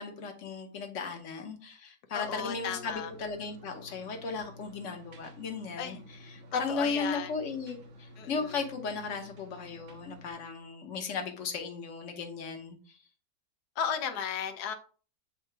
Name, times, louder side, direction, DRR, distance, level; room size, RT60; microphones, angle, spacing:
voice 1, 0.0-13.0, left 4 dB, 55° left, 1.4 m, -36 dB
voice 2, 2.1-3.1 5.8-6.0 6.5-7.3 8.2-8.6 13.8-14.7, left 8 dB, 80° left, 1.3 m, -34 dB
sound 1, 2.2-10.3, equal, 60° right, 1.3 m, -52 dB
7.9 x 2.8 x 4.6 m
omnidirectional pair, 1.7 m